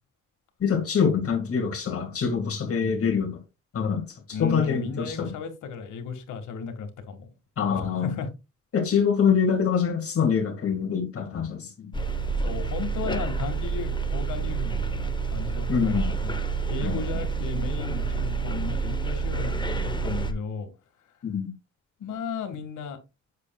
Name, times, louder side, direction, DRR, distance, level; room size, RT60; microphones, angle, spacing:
voice 1, 0.6-3.4 3.7-4.0 4.4-5.3 7.6-8.1 8.7-11.9 15.7-16.1 16.8-17.0 21.2-21.5, left 6 dB, 50° left, 2.1 m, -25 dB
voice 2, 4.3-7.3 7.7-8.3 12.4-16.4 16.7-20.7 22.0-23.0, left 5 dB, 80° left, 2.0 m, -35 dB
sound 1, 11.9-20.3, right 5 dB, 15° left, 1.0 m, -28 dB
8.3 x 6.8 x 2.4 m
cardioid pair, 90°, 30 cm